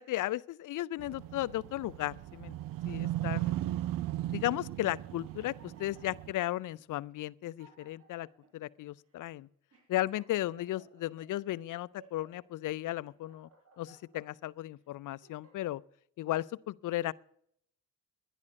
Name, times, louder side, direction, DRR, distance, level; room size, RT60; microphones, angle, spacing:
voice 1, 0.0-2.5 2.9-3.6 4.3-8.3 8.5-9.5 9.9-13.5 13.8-15.8 16.2-17.1, left 15 dB, 60° left, 0.6 m, -35 dB
sound 1, 1.0-6.3, right 14 dB, 70° right, 0.7 m, -37 dB
sound 2, 5.2-6.5 7.1-7.2 7.4-8.5 9.1-9.2 9.7-11.2 11.7-12.4 12.9-14.2 14.8-15.8, right 3 dB, 40° right, 6.1 m, -61 dB
11.0 x 11.0 x 6.4 m
supercardioid pair, 70°, 35 cm